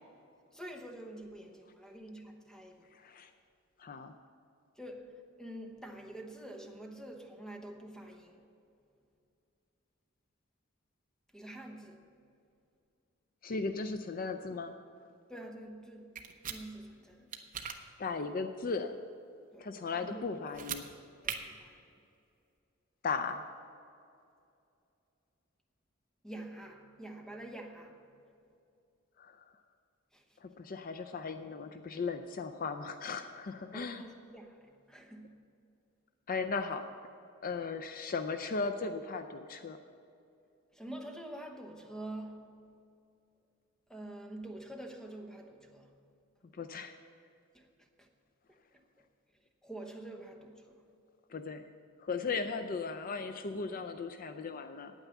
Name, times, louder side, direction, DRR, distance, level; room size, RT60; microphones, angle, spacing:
voice 1, 0.5-2.9 4.8-8.5 11.3-12.1 15.3-17.3 19.5-20.2 21.2-21.8 26.2-28.1 30.1-30.2 33.7-35.4 40.7-42.6 43.9-45.9 47.5-48.1 49.6-50.8, right 1 dB, 5° left, 1.0 m, -47 dB
voice 2, 2.9-3.3 3.8-4.1 13.4-14.7 18.0-19.0 19.6-20.9 23.0-23.4 29.2-29.4 30.4-34.0 36.3-36.8 37.4-39.8 46.5-46.9 51.3-51.6 52.0-54.9, left 4 dB, 45° left, 0.5 m, -37 dB
sound 1, 16.2-16.6 17.3-17.8 20.5-20.8 21.2-21.4, right 8 dB, 40° right, 0.8 m, -38 dB
9.2 x 9.1 x 7.1 m
head